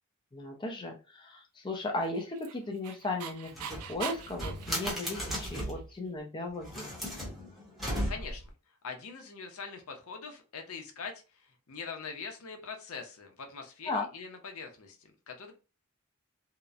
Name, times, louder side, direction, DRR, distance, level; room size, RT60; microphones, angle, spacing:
voice 1, 0.3-6.9 13.9-14.1, left 2 dB, 20° left, 1 dB, 0.4 m, -36 dB
Dog, 2.0-5.8, right 7 dB, 85° right, 0.4 m, -42 dB
sound 1, 3.5-5.9 6.6-8.5, equal, ahead, 0.8 m, -36 dB
voice 2, 8.1-8.4 8.8-15.5, left 5 dB, 70° left, 4 dB, 0.6 m, -43 dB
2.8 x 2.0 x 2.3 m, 0.32 s
head